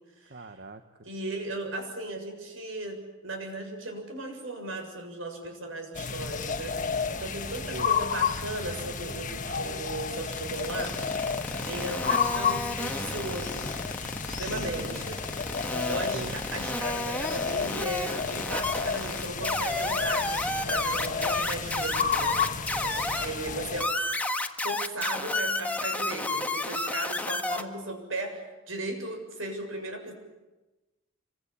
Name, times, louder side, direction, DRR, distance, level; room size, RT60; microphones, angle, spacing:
voice 1, 0.3-1.1 7.7-8.0 14.5-15.0 16.0-16.3, right 2 dB, 50° right, 7 dB, 1.4 m, -41 dB
voice 2, 1.0-11.0 11.7-13.7 14.3-22.4 22.7-23.9 24.6-30.1, right 2 dB, 75° right, 5 dB, 7.3 m, -36 dB
sound 1, 5.9-23.8, left 6 dB, 40° left, 1.4 m, -32 dB
sound 2, 10.3-23.2 23.8-27.6, left 2 dB, 5° left, 1.7 m, -31 dB
27.5 x 24.5 x 8.6 m, 1.1 s
head